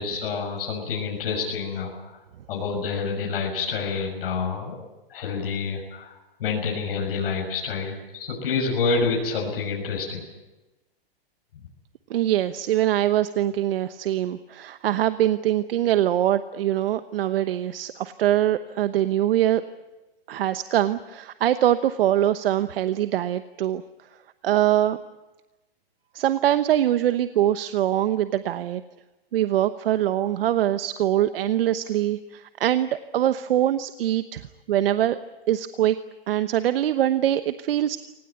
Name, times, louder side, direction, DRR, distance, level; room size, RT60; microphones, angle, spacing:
voice 1, 0.0-2.1 2.5-4.8 5.1-6.1 6.4-10.2, left 5 dB, 70° left, -1 dB, 6.6 m, -28 dB
voice 2, 12.1-19.6 20.3-23.8 24.4-25.0 26.1-28.8 29.3-34.4 34.7-35.2 35.5-35.9 36.3-38.0, right 12 dB, 75° right, 11 dB, 1.1 m, -23 dB
24.5 x 18.5 x 9.2 m, 1.1 s
hypercardioid pair, 155°, 30 cm